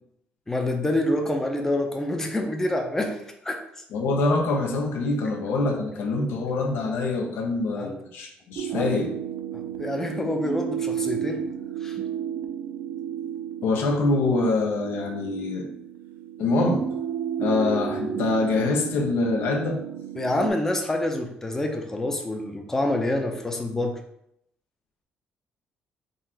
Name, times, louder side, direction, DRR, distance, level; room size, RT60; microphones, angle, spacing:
voice 1, 0.5-3.6 7.8-7.9 8.7-8.9 9.8-11.5 11.8-12.0 20.2-24.0, left 1 dB, 10° left, 3 dB, 0.5 m, -27 dB
voice 2, 3.9-9.1 13.6-15.7 16.4-16.9 17.4-19.8, left 3 dB, 80° left, 3 dB, 0.7 m, -25 dB
sound 1, 8.6-20.5, right 9 dB, 75° right, 0.4 m, -32 dB
3.9 x 2.5 x 4.2 m, 0.75 s
cardioid pair, 140°, 4 cm